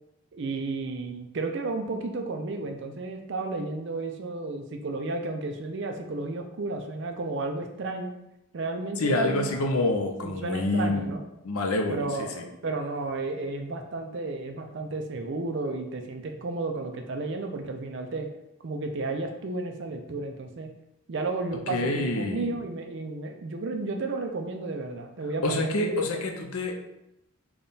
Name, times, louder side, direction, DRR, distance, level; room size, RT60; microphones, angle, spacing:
voice 1, 0.3-8.1 8.5-9.7 10.2-11.3 11.9-18.3 18.6-20.7 21.1-26.2, right 3 dB, 55° right, 5 dB, 0.4 m, -33 dB
voice 2, 9.0-11.1 11.4-12.4 21.7-22.6 25.4-26.8, left 2 dB, 80° left, 3 dB, 0.6 m, -27 dB
3.5 x 2.3 x 4.0 m, 0.87 s
head